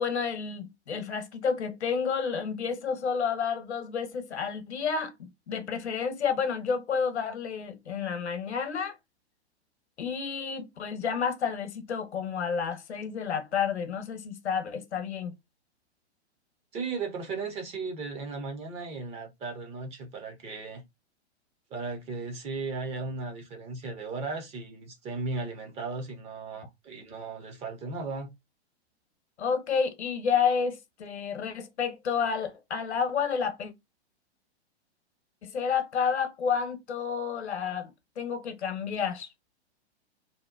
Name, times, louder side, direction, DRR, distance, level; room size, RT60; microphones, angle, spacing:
voice 1, 0.0-9.0 10.0-15.3 29.4-33.7 35.4-39.3, left 6 dB, 75° left, 0.8 m, -30 dB
voice 2, 16.7-20.8 21.7-28.3, right 3 dB, 20° right, 0.5 m, -36 dB
2.7 x 2.1 x 2.3 m
figure-of-eight pair, 110°, 33 cm